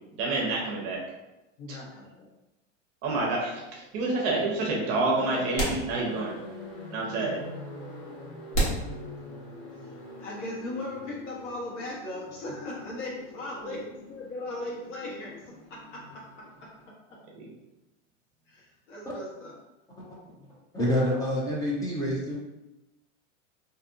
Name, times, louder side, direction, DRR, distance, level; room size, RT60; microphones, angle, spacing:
voice 1, 0.2-1.0 1.7-1.8 3.0-6.3 6.9-7.4 13.6-13.8 17.3-17.5, right 2 dB, 40° right, -2 dB, 0.7 m, -28 dB
voice 2, 1.6-2.3 7.2-7.3 10.2-17.2 18.5-19.5 20.4-20.5, left 2 dB, 70° left, -4 dB, 1.2 m, -38 dB
sound 1, 5.2-16.9, left 1 dB, 40° left, 0.8 m, -45 dB
sound 2, 5.5-6.5 6.8-6.9 7.6-7.7 8.5-9.8, right 1 dB, 90° left, 1.3 m, -30 dB
voice 3, 20.7-22.4, left 1 dB, 10° left, -5 dB, 0.4 m, -27 dB
2.6 x 2.5 x 2.4 m, 0.96 s
supercardioid pair, 130°, 37 cm